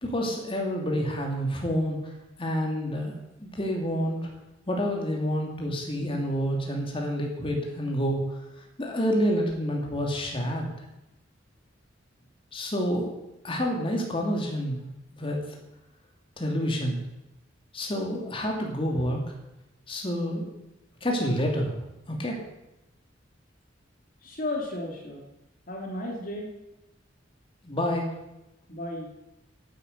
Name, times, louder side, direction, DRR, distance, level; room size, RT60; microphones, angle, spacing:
voice 1, 0.0-2.0 2.4-4.3 4.7-8.2 8.8-10.7 12.5-13.1 13.4-14.8 15.1-15.4 16.4-17.0 17.7-19.2 19.9-20.5 21.0-21.7 22.1-22.4 27.6-28.1, equal, 30° left, 0 dB, 2.7 m, -28 dB
voice 2, 24.2-25.2 25.7-26.5 28.7-29.1, left 1 dB, 45° left, 0 dB, 2.5 m, -34 dB
11.5 x 9.2 x 8.1 m, 0.92 s
head